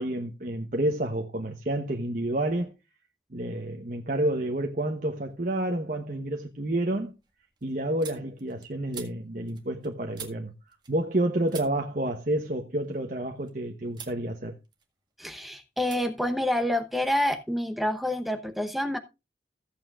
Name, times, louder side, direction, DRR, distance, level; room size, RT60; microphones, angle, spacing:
voice 1, 0.0-2.7 3.3-7.1 7.6-10.5 10.9-14.6, right 1 dB, 50° right, 1.0 m, -29 dB
sound 1, 5.2-5.8 6.2-11.2 11.5-13.5 13.9-14.2 14.6-15.3 15.8-16.0 16.3-17.3, right 6 dB, 25° right, 1.8 m, -48 dB
voice 2, 15.2-19.0, left 1 dB, ahead, 0.9 m, -28 dB
16.0 x 8.6 x 2.4 m
head